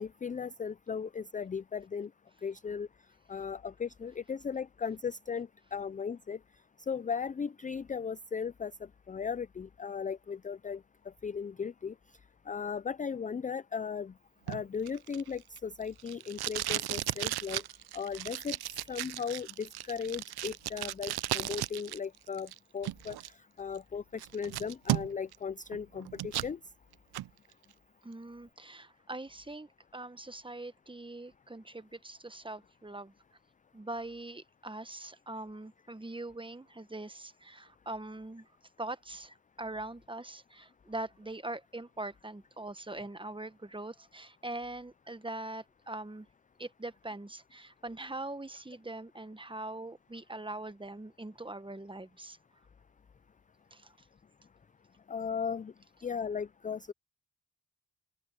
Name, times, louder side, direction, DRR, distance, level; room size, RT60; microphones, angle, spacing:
voice 1, 0.0-2.1 2.4-2.9 3.3-6.4 6.8-12.0 12.5-14.1 14.5-17.6 17.9-18.6 18.9-26.6 55.1-55.7 56.0-56.9, left 6 dB, 20° left, 0.4 m, -37 dB
Packing tape duct tape, 14.5-22.0 22.3-23.3 23.8-23.9 24.2-25.4 25.7-26.5 26.9-27.3, right 14 dB, 65° right, 0.5 m, -35 dB
voice 2, 28.0-33.1 33.7-38.5 38.8-46.3 46.6-52.4 53.7-53.9, right 2 dB, 10° right, 1.2 m, -42 dB
open air
cardioid pair, 80°, 41 cm